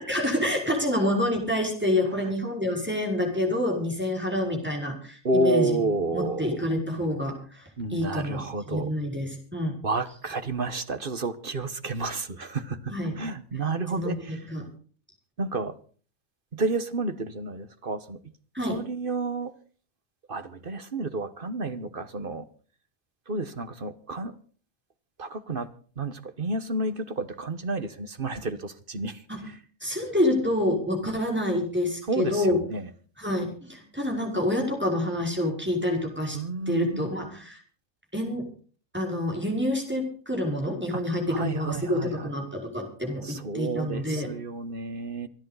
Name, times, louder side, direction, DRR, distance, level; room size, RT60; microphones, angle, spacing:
voice 1, 0.1-5.8 6.1-8.4 8.7-9.7 12.9-13.2 13.9-14.6 18.5-18.8 29.3-29.5 29.8-32.6 33.2-36.4 36.7-37.6 38.1-38.5 38.9-44.3, left 1 dB, 5° right, 1 dB, 5.3 m, -27 dB
voice 2, 5.2-6.6 7.8-8.9 9.8-14.4 15.4-15.8 16.5-18.2 18.6-19.5 20.3-22.5 23.3-24.3 25.2-25.7 26.0-29.2 29.5-29.6 32.1-32.9 36.3-37.1 41.3-42.3 43.2-45.3, right 2 dB, 40° right, 11 dB, 1.3 m, -30 dB
26.5 x 10.5 x 4.1 m, 0.41 s
omnidirectional pair, 1.6 m